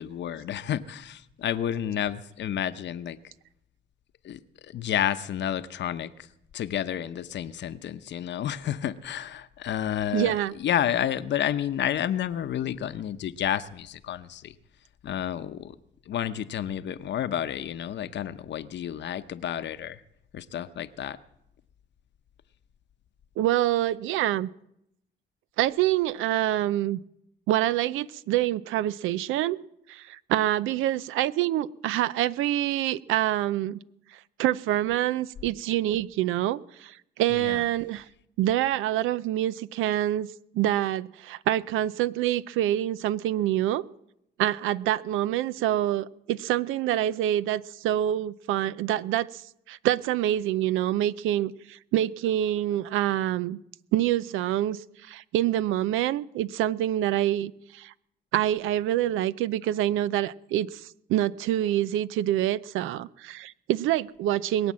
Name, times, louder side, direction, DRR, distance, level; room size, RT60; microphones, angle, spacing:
voice 1, 0.0-3.2 4.2-6.3 6.5-14.5 15.0-15.7 16.1-20.0 20.3-21.2 37.3-37.6, left 10 dB, 65° left, 0.9 m, -30 dB
voice 2, 10.1-10.5 23.4-24.5 25.6-27.0 27.5-29.6 29.9-33.8 34.4-38.0 38.4-40.3 40.5-43.8 44.4-49.4 49.7-53.6 53.9-57.9 58.3-64.7, right 13 dB, 90° right, 0.5 m, -26 dB
21.5 x 8.8 x 7.5 m
cardioid pair, 90°, 20 cm